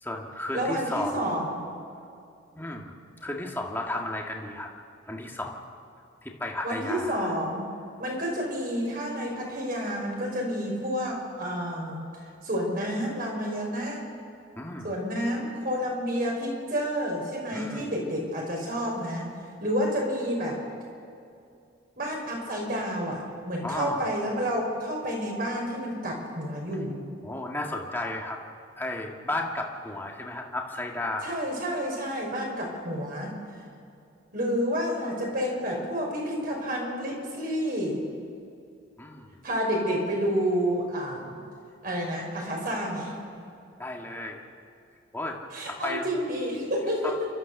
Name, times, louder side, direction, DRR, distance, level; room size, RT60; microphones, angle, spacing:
voice 1, 0.0-1.4 2.6-4.7 5.1-5.6 6.2-7.4 14.6-14.9 17.5-17.9 23.6-24.1 27.2-28.4 28.8-31.3 39.0-39.3 43.8-44.4 45.1-45.4 45.7-46.0 47.0-47.2, left 1 dB, 10° left, 0 dB, 1.8 m, -33 dB
voice 2, 0.5-1.6 6.6-7.6 8.0-12.1 12.4-14.0 14.8-19.3 19.6-20.6 22.0-27.0 31.2-33.3 34.3-38.0 39.4-41.4 41.8-43.1 45.5-47.3, equal, 50° right, -1 dB, 5.5 m, -29 dB
30.0 x 13.5 x 7.0 m, 2.5 s
head